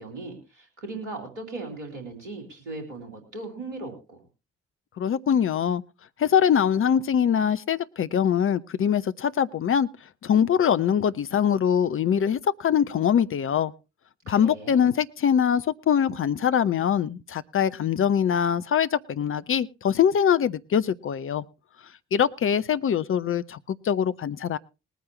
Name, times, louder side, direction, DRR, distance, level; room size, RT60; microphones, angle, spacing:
voice 1, 0.0-4.2 14.3-14.9, right 2 dB, 80° right, 3.6 m, -38 dB
voice 2, 5.0-5.8 6.2-9.9 10.2-13.7 14.3-21.4 22.1-24.6, left 8 dB, 35° left, 0.7 m, -23 dB
21.0 x 9.2 x 3.1 m
figure-of-eight pair, 40°, 36 cm